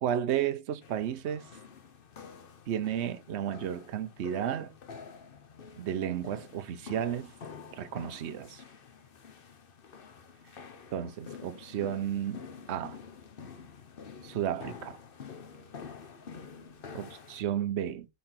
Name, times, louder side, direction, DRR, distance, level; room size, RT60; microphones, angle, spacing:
voice 1, 0.0-1.5 2.7-4.7 5.8-7.3 7.7-8.6 10.9-13.0 14.2-15.0 16.9-18.1, right 10 dB, 60° right, 0.9 m, -33 dB
sound 1, 0.8-17.4, left 6 dB, 45° left, 0.9 m, -48 dB
4.4 x 4.4 x 5.7 m
omnidirectional pair, 1.4 m